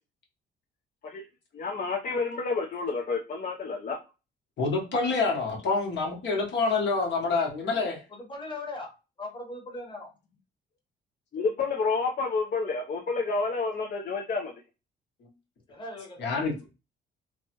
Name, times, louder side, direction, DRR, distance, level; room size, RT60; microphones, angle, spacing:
voice 1, 1.5-4.0 11.3-14.5, left 4 dB, 45° left, 0.6 m, -29 dB
voice 2, 4.6-8.0 15.2-15.3 16.2-16.5, left 4 dB, 65° left, 1.2 m, -27 dB
voice 3, 7.7-8.9 9.2-10.1 15.7-16.3, left 2 dB, 25° left, 1.2 m, -40 dB
3.2 x 2.1 x 2.9 m
cardioid pair, 90°, 20 cm